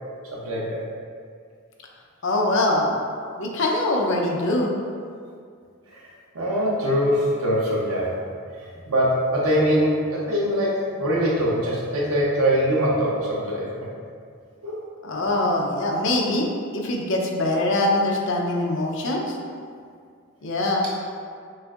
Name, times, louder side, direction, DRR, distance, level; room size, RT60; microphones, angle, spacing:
voice 1, 0.3-0.8 6.3-8.1 8.9-13.7 14.6-14.8, equal, 85° right, -4 dB, 0.9 m, -22 dB
voice 2, 2.2-2.9 3.4-4.7 15.0-16.5 16.7-19.4 20.4-20.9, left 1 dB, 60° left, -1 dB, 0.6 m, -23 dB
6.2 x 2.6 x 2.4 m, 2.2 s
head